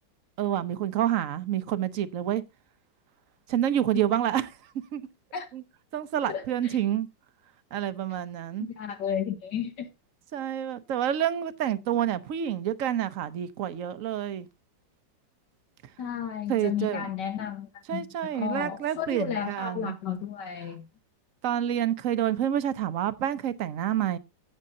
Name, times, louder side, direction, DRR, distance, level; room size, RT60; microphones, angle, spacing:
voice 1, 0.4-2.4 3.5-4.5 4.9-5.0 5.5-5.6 5.9-7.1 7.7-8.7 10.3-14.5 16.5-17.1 17.9-20.0 21.4-24.2, right 11 dB, 55° right, 1.0 m, -28 dB
voice 2, 6.3-6.8 8.8-9.9 16.0-18.0 18.3-20.9, left 8 dB, 75° left, 1.7 m, -33 dB
16.0 x 6.5 x 2.6 m
omnidirectional pair, 2.0 m